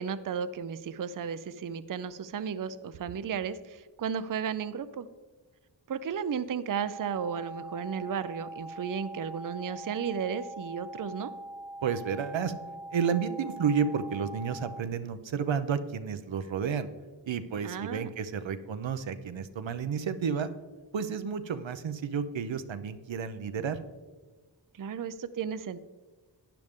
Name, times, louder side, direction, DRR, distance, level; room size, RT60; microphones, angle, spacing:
voice 1, 0.0-5.1 5.9-11.3 17.6-18.1 24.7-25.8, right 7 dB, 45° right, 13 dB, 0.5 m, -34 dB
sound 1, 6.8-14.8, right 1 dB, 5° right, 0.6 m, -43 dB
voice 2, 11.8-12.5 12.9-16.9 17.3-20.5 20.9-23.8, right 6 dB, 80° right, 11 dB, 0.7 m, -31 dB
12.0 x 9.4 x 3.6 m, 1.3 s
wide cardioid pair, 55°, 45 cm